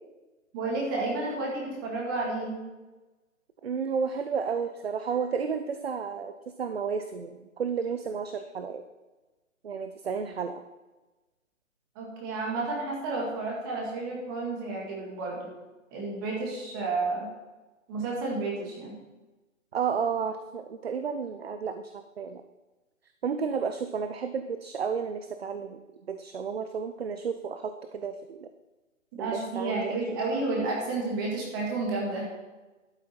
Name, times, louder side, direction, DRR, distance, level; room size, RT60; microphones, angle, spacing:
voice 1, 0.5-2.6 12.0-15.5 15.9-17.3 17.9-18.9 29.2-32.3, right 3 dB, 15° right, -3 dB, 2.0 m, -31 dB
voice 2, 3.6-8.8 9.6-10.6 19.7-22.4 23.2-25.8 26.1-28.5 29.2-30.0, right 6 dB, 50° right, 9 dB, 0.6 m, -32 dB
12.0 x 8.7 x 4.4 m, 1.2 s
hypercardioid pair, 170°, 40 cm